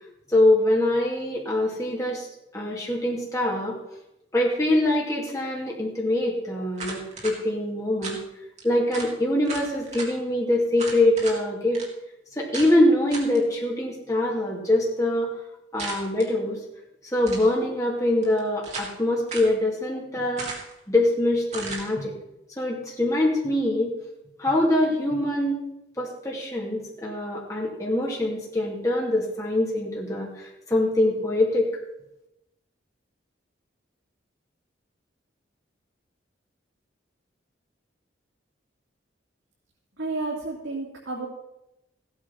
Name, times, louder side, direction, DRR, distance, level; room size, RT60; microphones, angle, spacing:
voice 1, 0.3-3.8 4.3-8.2 8.6-11.8 12.4-15.4 15.7-16.6 17.0-20.5 20.9-22.1 22.6-23.9 24.4-25.6 26.0-31.7, left 1 dB, 15° left, -2 dB, 2.3 m, -24 dB
sound 1, 6.8-7.4 8.0-8.2 8.6-8.7 8.9-9.1 9.5-10.1 10.8-11.4 11.7-11.9 12.5-12.7 13.1-13.4 15.8-16.3 17.1-17.5 18.2-19.0 19.3-19.5 20.4-20.8 21.5-21.9, right 3 dB, 35° right, 2.9 m, -35 dB
voice 2, 40.0-41.3, right 3 dB, 75° right, -4 dB, 2.7 m, -31 dB
15.5 x 8.7 x 5.9 m, 0.88 s
head